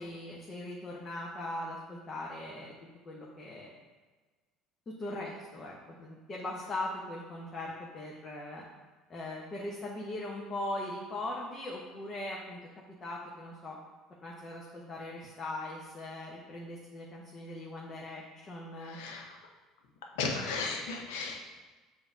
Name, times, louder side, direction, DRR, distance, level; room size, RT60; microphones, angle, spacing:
voice 1, 0.0-2.7 3.0-3.8 4.9-8.6 9.1-12.6 13.0-13.8 14.2-19.0, left 1 dB, 35° left, -3 dB, 1.0 m, -40 dB
voice 2, 18.8-19.3 20.2-21.4, left 4 dB, 75° left, 2 dB, 0.9 m, -35 dB
6.9 x 2.9 x 5.0 m, 1.3 s
hypercardioid pair, 65°, 0 cm